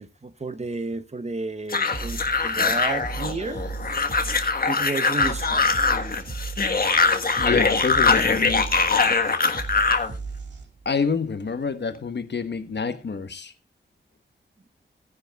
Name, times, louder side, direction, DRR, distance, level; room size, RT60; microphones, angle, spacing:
voice 1, 0.0-3.6 4.6-5.7, right 3 dB, 35° right, 0.9 m, -32 dB
sound 1, 1.7-10.1, left 4 dB, 50° left, 1.4 m, -22 dB
sound 2, 1.9-10.9, right 4 dB, 75° right, 1.9 m, -36 dB
voice 2, 7.4-8.7 10.8-13.5, left 5 dB, 70° left, 1.2 m, -27 dB
18.0 x 9.9 x 2.3 m
wide cardioid pair, 100°, 19 cm